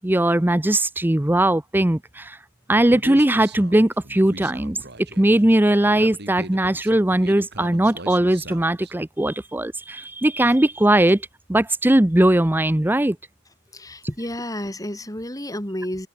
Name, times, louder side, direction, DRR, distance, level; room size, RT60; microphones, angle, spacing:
voice 1, 0.0-2.0 2.7-4.8 5.2-11.2 11.5-13.2, right 1 dB, 10° right, 0.5 m, -19 dB
Human voice, 2.9-8.9, right 2 dB, 50° right, 5.2 m, -40 dB
voice 2, 13.7-16.1, left 1 dB, 15° left, 4.7 m, -30 dB
open air
head